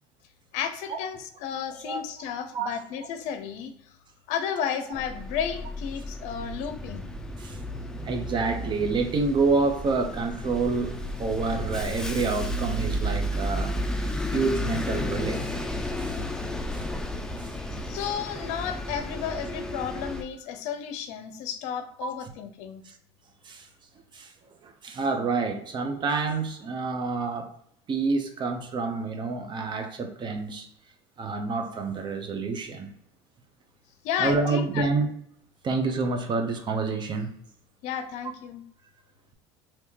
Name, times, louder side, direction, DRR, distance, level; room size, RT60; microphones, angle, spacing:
voice 1, 0.5-3.7 4.3-7.1 17.9-22.8 34.0-34.9 37.8-38.6, left 8 dB, 65° left, 0.6 m, -32 dB
Bus, 4.9-20.2, equal, 5° left, 0.4 m, -32 dB
voice 2, 8.0-13.7 14.2-15.6 16.0-16.2 16.7-16.8 17.4-17.5 22.0-22.1 22.9-23.0 23.4-23.7 24.1-24.3 24.6-27.5 27.9-30.7 31.2-32.9 34.2-35.1 35.6-37.3, right 4 dB, 35° right, 0.7 m, -28 dB
3.4 x 2.8 x 2.8 m
hypercardioid pair, 85°, 13 cm